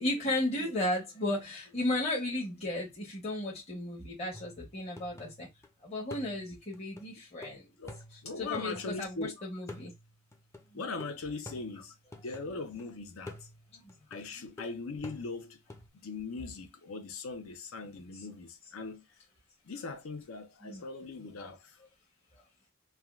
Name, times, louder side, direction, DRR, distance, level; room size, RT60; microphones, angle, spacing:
voice 1, 0.0-5.5 5.8-7.7 8.1-9.9 10.7-10.8 13.7-13.9 17.9-18.3 20.6-20.9, left 1 dB, 30° left, 0.9 m, -34 dB
sound 1, 4.3-5.7 6.1-9.3 9.7-12.8 13.3-15.9, left 1 dB, 15° left, 0.4 m, -50 dB
voice 2, 7.8-9.4 10.7-11.9 12.2-13.5 14.1-15.6 16.0-19.0 19.7-21.8, left 3 dB, 85° left, 0.6 m, -40 dB
3.4 x 2.2 x 2.3 m
head